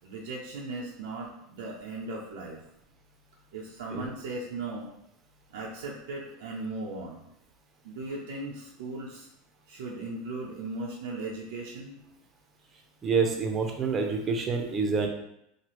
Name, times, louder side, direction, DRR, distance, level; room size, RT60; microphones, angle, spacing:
voice 1, 0.0-2.6 3.5-4.9 5.5-7.2 7.8-9.3 9.7-12.0, right 2 dB, 75° right, -3 dB, 0.5 m, -37 dB
voice 2, 13.0-15.1, right 4 dB, 30° right, 3 dB, 0.6 m, -27 dB
3.0 x 2.3 x 3.0 m, 0.80 s
hypercardioid pair, 100°, 0 cm